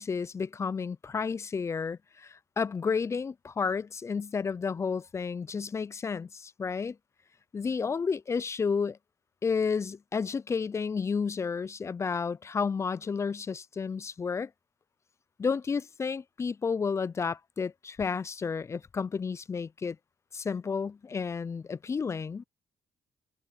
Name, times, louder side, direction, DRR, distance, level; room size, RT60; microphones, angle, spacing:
voice 1, 0.0-7.0 7.5-9.0 9.4-14.5 15.4-20.0 20.3-22.5, left 5 dB, 30° left, 0.5 m, -31 dB
supercardioid pair, 75°, 9 cm